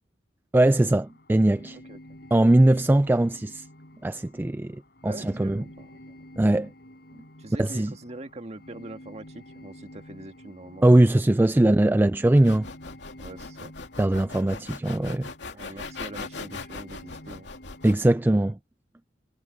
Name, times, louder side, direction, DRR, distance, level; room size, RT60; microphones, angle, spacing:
voice 1, 0.5-1.8 2.3-3.6 4.0-4.8 5.0-5.6 6.4-6.7 7.6-7.9 10.8-12.7 14.0-15.3 17.8-18.6, right 1 dB, 10° right, 0.3 m, -20 dB
sound 1, 0.6-18.5, left 1 dB, 65° left, 5.9 m, -49 dB
voice 2, 1.7-2.0 5.0-6.2 7.4-11.0 11.3-12.0 13.2-13.7 15.5-17.5, right 1 dB, 40° right, 1.8 m, -43 dB
sound 2, 12.4-18.0, left 4 dB, 85° left, 2.4 m, -39 dB
head